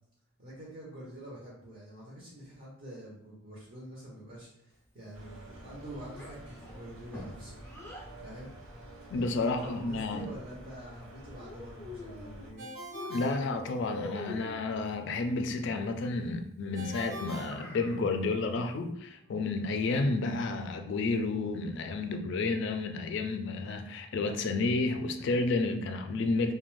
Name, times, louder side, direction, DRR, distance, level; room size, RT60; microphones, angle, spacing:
voice 1, 0.4-7.6 8.2-8.5 9.4-12.7, right 1 dB, 45° right, -5 dB, 0.7 m, -46 dB
sound 1, 5.1-12.5, right 1 dB, 85° right, 0.7 m, -49 dB
Child speech kid speaking, 6.1-8.1 9.0-10.3 11.4-12.6 12.9-14.7 17.2-18.1, left 3 dB, 10° left, 0.6 m, -45 dB
voice 2, 9.1-10.3 13.1-26.5, left 3 dB, 60° left, 6 dB, 0.3 m, -31 dB
Ringtone, 12.6-14.2 16.7-18.4, right 1 dB, 70° right, 1.1 m, -44 dB
2.5 x 2.2 x 3.1 m, 0.71 s
head